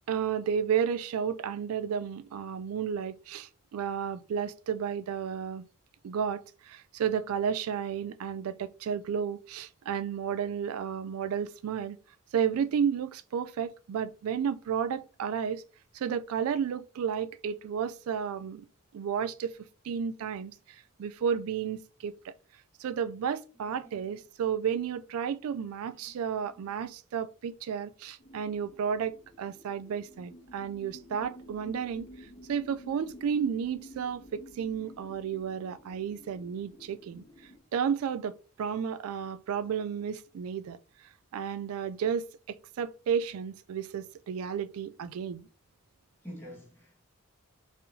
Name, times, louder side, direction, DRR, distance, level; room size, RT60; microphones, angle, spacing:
voice 1, 0.1-5.6 6.0-12.0 12.3-15.6 15.9-18.6 18.9-19.6 19.8-22.3 22.8-37.2 37.7-40.8 41.3-45.5, right 7 dB, 85° right, 0.3 m, -32 dB
voice 2, 23.7-24.2 25.9-26.7 34.8-35.0 46.2-47.0, equal, 10° left, 1.6 m, -49 dB
sound 1, 28.2-37.6, equal, 45° left, 1.3 m, -51 dB
4.4 x 3.5 x 2.7 m
head